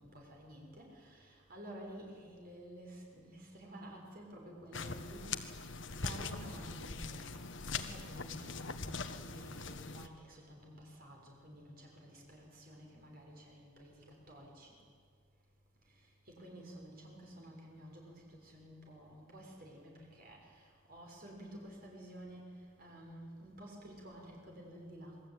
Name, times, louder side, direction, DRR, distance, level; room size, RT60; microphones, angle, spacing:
voice 1, 0.0-5.6 5.9-7.3 7.7-14.7 15.9-22.5 22.8-25.2, right 1 dB, 50° right, -1 dB, 6.5 m, -52 dB
sound 1, 4.7-10.1, left 4 dB, 70° left, 1.5 m, -42 dB
27.5 x 21.5 x 9.4 m, 2.1 s
head